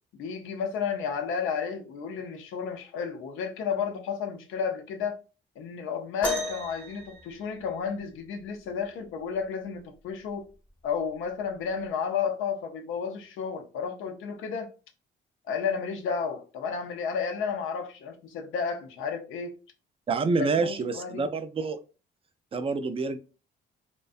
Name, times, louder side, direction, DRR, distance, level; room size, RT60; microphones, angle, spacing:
voice 1, 0.1-5.2 5.6-10.5 10.8-14.7 15.5-19.5 20.4-21.2, left 6 dB, 85° left, 0.5 m, -32 dB
sound 1, 6.2-8.1 9.8-9.9 10.7-10.9 11.8-11.9, left 2 dB, 5° left, 0.7 m, -34 dB
voice 2, 20.1-21.8 22.5-23.2, right 4 dB, 30° right, 0.3 m, -27 dB
2.5 x 2.2 x 2.4 m
cardioid pair, 90°, 20 cm